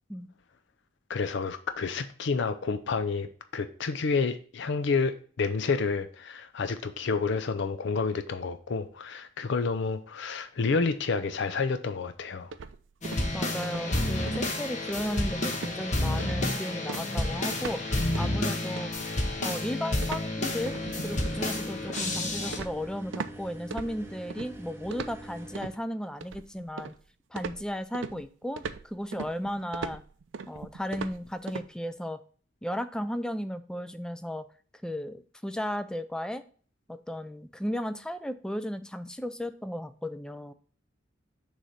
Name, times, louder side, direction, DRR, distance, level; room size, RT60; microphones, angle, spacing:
voice 1, 1.1-12.5, left 4 dB, 65° left, 0.5 m, -29 dB
sound 1, 12.5-13.3 13.6-13.9 14.3-14.5 14.9-15.3 15.5-15.8 16.2-16.5 16.9-17.8 18.1-18.4 18.8-23.4 23.7-24.5 24.9-25.8 26.2-27.0 27.4-31.7, right 5 dB, 70° right, 0.4 m, -40 dB
sound 2, 13.0-22.6, left 1 dB, 40° left, 1.2 m, -30 dB
voice 2, 13.3-18.9 19.4-26.9 27.3-30.0 30.5-32.2 32.6-34.5 34.8-36.4 36.9-40.5, equal, 5° left, 0.4 m, -35 dB
sound 3, 20.6-25.7, right 1 dB, 15° right, 0.9 m, -45 dB
6.4 x 3.3 x 5.6 m
head